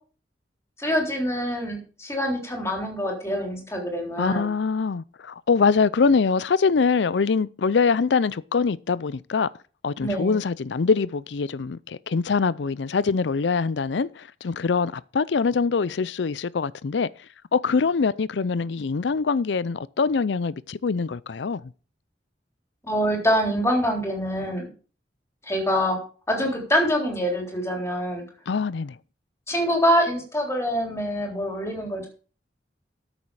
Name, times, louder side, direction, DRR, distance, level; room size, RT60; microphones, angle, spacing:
voice 1, 0.8-4.5 10.0-10.4 22.8-24.7 25.4-26.0 26.3-28.2 29.5-32.1, equal, 15° left, 3.6 m, -25 dB
voice 2, 4.2-9.5 9.8-17.1 17.5-21.6 28.5-28.9, left 5 dB, 75° left, 0.5 m, -23 dB
13.0 x 7.2 x 4.9 m
head